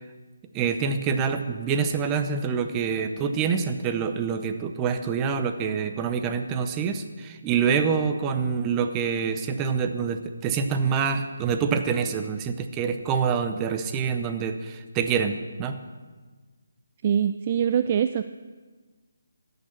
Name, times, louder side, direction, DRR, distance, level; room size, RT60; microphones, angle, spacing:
voice 1, 0.5-15.8, right 6 dB, 20° right, 7 dB, 0.7 m, -26 dB
voice 2, 17.0-18.2, right 8 dB, 35° right, 11 dB, 0.4 m, -23 dB
13.0 x 6.8 x 7.4 m, 1.4 s
figure-of-eight pair, 150°, 0 cm